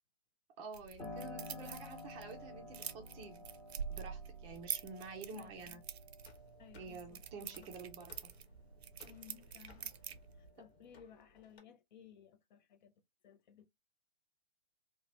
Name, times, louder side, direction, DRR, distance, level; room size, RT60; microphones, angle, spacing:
voice 1, 0.6-3.5 3.9-5.8 6.7-8.3, right 4 dB, 20° right, 0.4 m, -49 dB
sound 1, 0.7-10.5, right 8 dB, 85° right, 0.5 m, -47 dB
Piano, 1.0-9.4 9.8-10.9, left 2 dB, 15° left, 1.0 m, -53 dB
voice 2, 5.4-5.8 6.6-7.7 9.0-9.9 10.4-12.9 13.2-13.7, left 8 dB, 50° left, 0.5 m, -59 dB
sound 2, 6.2-11.6, left 4 dB, 75° left, 1.2 m, -64 dB
2.9 x 2.2 x 2.6 m
hypercardioid pair, 135°, 31 cm